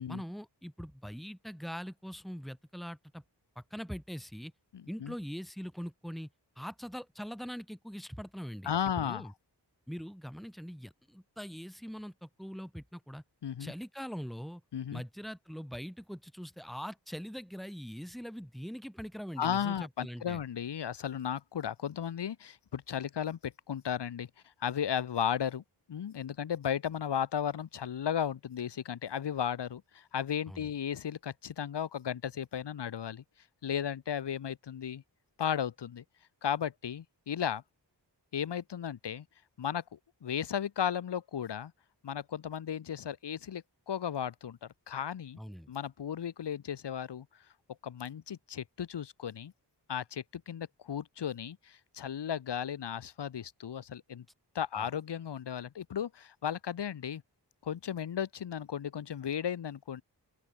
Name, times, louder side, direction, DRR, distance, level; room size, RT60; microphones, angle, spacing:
voice 1, 0.1-3.2 3.6-4.5 4.9-6.3 6.6-8.7 9.0-9.3 9.9-13.2 13.6-14.6 14.9-20.4 30.5-30.7 45.4-45.7 54.7-54.9, equal, ahead, 5.9 m, -42 dB
voice 2, 4.7-5.1 8.7-9.3 13.4-13.7 14.7-15.0 19.4-24.3 24.6-25.6 25.9-33.2 33.6-35.0 35.4-36.0 36.4-37.6 38.3-39.3 39.6-41.7 42.0-45.4 45.7-47.3 47.8-49.5 49.9-54.3 54.5-57.2 57.6-60.0, left 9 dB, 75° left, 0.8 m, -35 dB
open air
wide cardioid pair, 70°, 42 cm